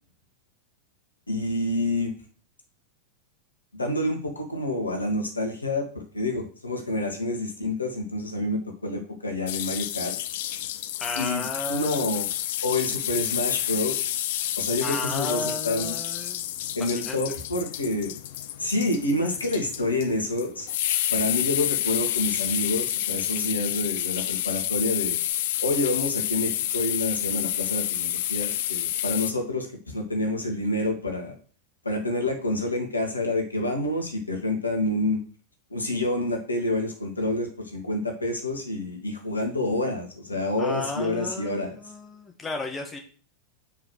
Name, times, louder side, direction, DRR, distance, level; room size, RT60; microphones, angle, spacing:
voice 1, 1.3-2.1 3.7-10.2 11.2-12.3 12.6-14.1 14.6-15.9 16.8-18.1 18.6-20.7 21.1-25.2 25.6-31.4 31.8-35.2 35.7-41.8, left 2 dB, 80° left, 3 dB, 1.8 m, -28 dB
sound 1, 9.5-29.3, left 13 dB, 55° left, 0.4 m, -29 dB
voice 2, 11.0-12.1 14.8-16.4 16.8-17.2 40.6-43.0, left 3 dB, 15° left, 3 dB, 1.4 m, -34 dB
5.6 x 4.9 x 6.2 m, 0.40 s
figure-of-eight pair, 90°, 0 cm